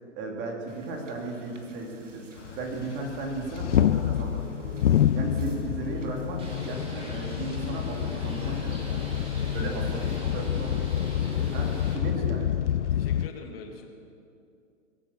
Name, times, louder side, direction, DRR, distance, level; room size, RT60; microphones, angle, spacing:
voice 1, 0.1-2.3 2.6-4.8 5.1-9.1 9.4-10.9 11.5-12.5, right 3 dB, 30° right, 1 dB, 2.8 m, -35 dB
Wind / Boat Water vehicle, 0.7-6.7, right 2 dB, 75° right, 2.1 m, -52 dB
sound 1, 2.4-13.3, left 10 dB, 70° left, 0.6 m, -28 dB
Bird, 6.4-11.9, equal, 15° right, 3.7 m, -40 dB
voice 2, 12.9-13.9, left 4 dB, 50° left, 3 dB, 2.5 m, -43 dB
22.5 x 9.1 x 7.1 m, 2.5 s
figure-of-eight pair, 120°, 37 cm